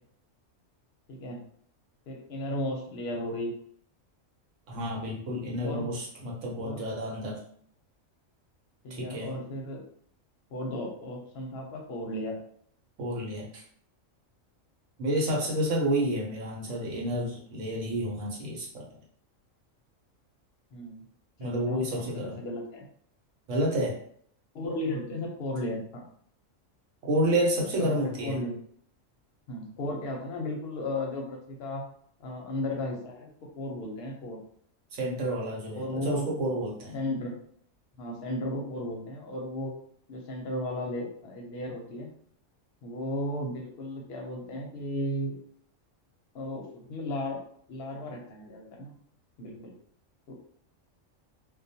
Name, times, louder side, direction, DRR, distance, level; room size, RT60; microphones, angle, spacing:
voice 1, 1.1-1.4 2.1-3.5 5.6-5.9 6.6-6.8 8.8-9.8 10.5-12.4 20.7-21.0 21.4-22.9 24.5-26.0 27.8-28.6 29.5-31.8 32.2-34.4 35.8-36.3 36.9-37.4 38.0-39.7 40.1-42.1 42.8-45.4 46.3-47.4 47.7-48.9 49.4-49.7 50.3-50.4, left 1 dB, 60° left, 0 dB, 0.7 m, -35 dB
voice 2, 4.7-7.4 8.9-9.3 13.0-13.6 15.0-18.9 21.4-22.4 23.5-24.0 27.0-28.4 34.9-37.0, right 1 dB, 70° right, -2 dB, 1.0 m, -30 dB
2.3 x 2.2 x 2.6 m, 0.62 s
omnidirectional pair, 1.4 m